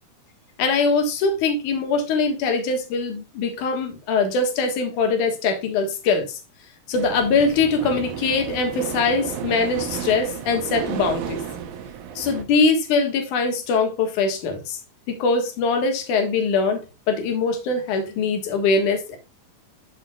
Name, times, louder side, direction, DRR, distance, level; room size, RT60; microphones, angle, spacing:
voice 1, 0.6-6.4 6.9-11.4 12.2-14.8 15.1-19.2, left 4 dB, 65° left, 2.9 m, -22 dB
sound 1, 6.9-12.4, right 8 dB, 80° right, 2.9 m, -32 dB
12.0 x 6.2 x 2.3 m
omnidirectional pair, 4.0 m